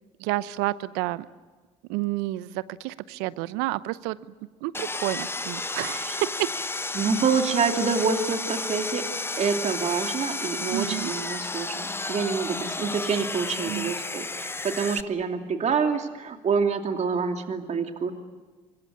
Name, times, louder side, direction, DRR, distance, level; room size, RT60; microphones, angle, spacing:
voice 1, 0.2-1.3 1.9-4.2 4.6-6.5 10.7-11.1 13.7-13.9, right 18 dB, 70° right, 17 dB, 0.9 m, -30 dB
Sawing, 4.7-15.0, left 3 dB, 15° left, 0.9 m, -32 dB
voice 2, 6.9-9.0 9.4-18.1, right 5 dB, 40° right, 5 dB, 2.8 m, -27 dB
26.0 x 21.5 x 9.0 m, 1.4 s
hypercardioid pair, 60°, 17 cm